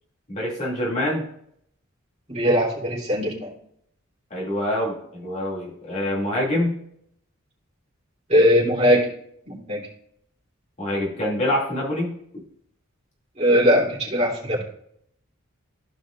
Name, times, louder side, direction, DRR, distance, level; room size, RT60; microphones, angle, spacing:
voice 1, 0.3-1.2 4.3-6.8 10.8-12.2, left 1 dB, 35° left, -5 dB, 2.6 m, -25 dB
voice 2, 2.3-3.5 8.3-9.1 9.5-9.8 13.4-14.6, equal, 30° right, -4 dB, 3.4 m, -20 dB
15.5 x 5.2 x 2.5 m, 0.69 s
head